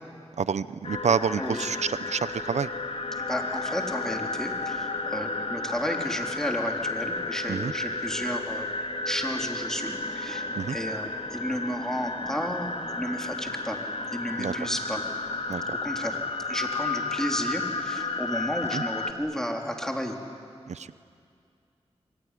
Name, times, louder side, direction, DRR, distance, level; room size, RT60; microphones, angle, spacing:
voice 1, 0.3-2.7 7.5-7.7 10.6-10.8 14.4-14.5 15.5-15.6 18.7-18.8 20.7-21.0, right 6 dB, 90° right, 15 dB, 0.7 m, -28 dB
sound 1, 0.8-19.1, left 3 dB, 60° left, 2.1 m, -32 dB
voice 2, 3.2-8.7 9.1-13.8 14.1-15.0 15.7-16.2 16.5-20.2, equal, 5° left, 2 dB, 3.7 m, -32 dB
26.0 x 22.5 x 10.0 m, 2.4 s
cardioid pair, 50°, 11 cm